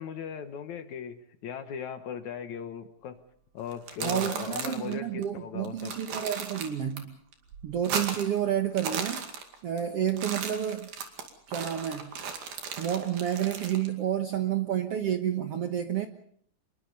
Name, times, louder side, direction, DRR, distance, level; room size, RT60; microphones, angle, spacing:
voice 1, 0.0-3.2 3.5-5.9, left 7 dB, 65° left, 9 dB, 2.3 m, -38 dB
sound 1, 3.7-4.9 5.2-5.3 5.7-7.0 7.3-8.4 8.7-9.8 10.1-13.9, right 6 dB, 85° right, 4.2 m, -36 dB
voice 2, 4.0-7.2 7.6-9.2 9.6-10.9 11.5-12.1 12.8-16.1, right 10 dB, 60° right, 6 dB, 1.6 m, -30 dB
27.0 x 22.0 x 5.4 m, 0.64 s
omnidirectional pair, 4.1 m